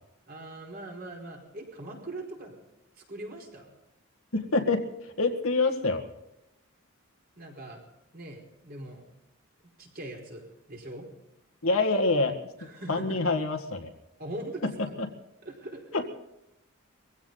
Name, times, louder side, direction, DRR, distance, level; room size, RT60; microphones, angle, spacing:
voice 1, 0.3-2.5 3.0-3.7 7.3-7.8 8.1-9.0 9.8-11.0 12.6-13.2 14.2-14.7 15.4-15.9, right 1 dB, 45° right, 0 dB, 4.9 m, -41 dB
voice 2, 4.3-4.8 5.2-6.1 11.6-12.4 12.9-13.9 15.9-16.0, left 3 dB, 75° left, 5 dB, 1.9 m, -26 dB
22.0 x 16.0 x 4.0 m, 0.89 s
head